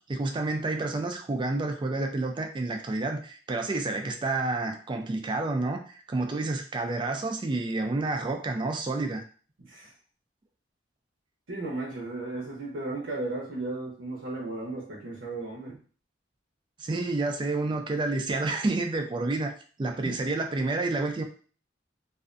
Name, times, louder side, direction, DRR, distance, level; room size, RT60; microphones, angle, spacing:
voice 1, 0.1-9.2 16.8-19.5 19.8-21.2, right 2 dB, 25° right, 4 dB, 0.3 m, -29 dB
voice 2, 9.6-9.9 11.5-15.8 20.0-20.2, right 2 dB, 85° right, -4 dB, 0.7 m, -35 dB
2.5 x 2.2 x 2.4 m, 0.41 s
head